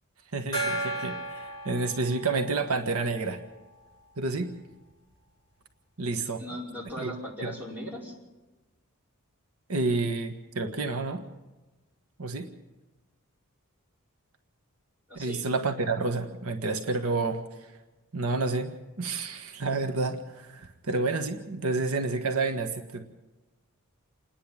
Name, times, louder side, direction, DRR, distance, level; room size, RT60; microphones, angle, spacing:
voice 1, 0.3-3.4 4.2-4.5 6.0-6.4 7.0-7.1 7.4-7.5 9.7-11.2 12.2-12.5 15.1-17.7 18.1-23.0, right 3 dB, 75° right, 5 dB, 1.4 m, -29 dB
Gong, 0.5-3.8, right 2 dB, 20° left, 6.9 m, -35 dB
voice 2, 6.4-8.1 15.1-15.4, equal, 10° right, -4 dB, 5.1 m, -38 dB
28.0 x 10.5 x 8.9 m, 1.1 s
head